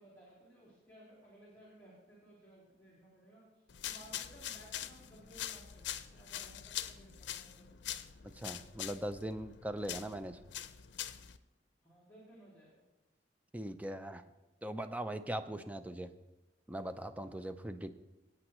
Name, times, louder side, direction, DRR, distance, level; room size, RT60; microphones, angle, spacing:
voice 1, 0.0-7.7 11.8-12.8, right 1 dB, 10° left, -9 dB, 3.1 m, -59 dB
sound 1, 3.7-11.4, left 11 dB, 90° left, 0.5 m, -44 dB
voice 2, 8.3-10.4 13.5-14.2 14.6-16.1 16.7-17.9, right 1 dB, 10° right, 10 dB, 0.4 m, -40 dB
17.5 x 8.8 x 3.1 m, 1.1 s
head